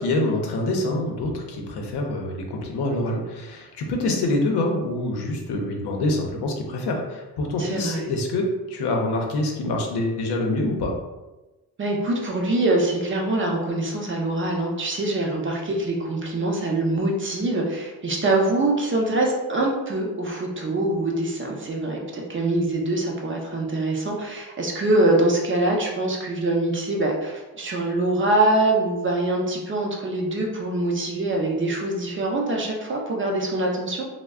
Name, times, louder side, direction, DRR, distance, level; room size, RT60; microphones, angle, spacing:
voice 1, 0.0-10.9, left 2 dB, 70° left, 1 dB, 0.7 m, -26 dB
voice 2, 7.6-8.1 11.8-34.0, right 2 dB, 30° right, -1 dB, 0.5 m, -24 dB
2.2 x 2.1 x 3.4 m, 1.1 s
cardioid pair, 105°, 41 cm